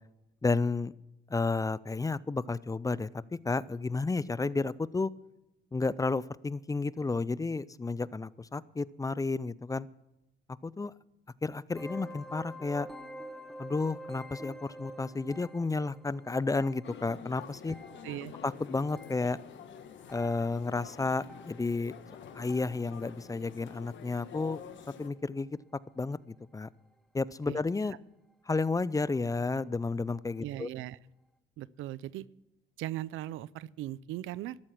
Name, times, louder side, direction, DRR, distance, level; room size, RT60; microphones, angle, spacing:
voice 1, 0.4-0.9 1.3-5.1 5.7-9.9 10.6-10.9 11.4-12.9 13.6-17.8 18.4-19.4 20.1-21.9 22.3-24.6 25.0-25.6 26.0-26.7 27.1-28.0 28.5-30.7, left 3 dB, 15° left, 19 dB, 0.5 m, -32 dB
sound 1, 11.7-23.2 23.5-23.9 24.5-24.8 25.0-25.1 25.7-25.8, right 1 dB, ahead, 1.2 m, -48 dB
sound 2, 16.8-25.1, left 8 dB, 70° left, 1.5 m, -48 dB
voice 2, 30.4-31.0 31.6-32.3 32.8-34.6, right 14 dB, 90° right, 21 dB, 0.5 m, -38 dB
13.0 x 12.5 x 5.9 m, 0.92 s
cardioid pair, 90°, 20 cm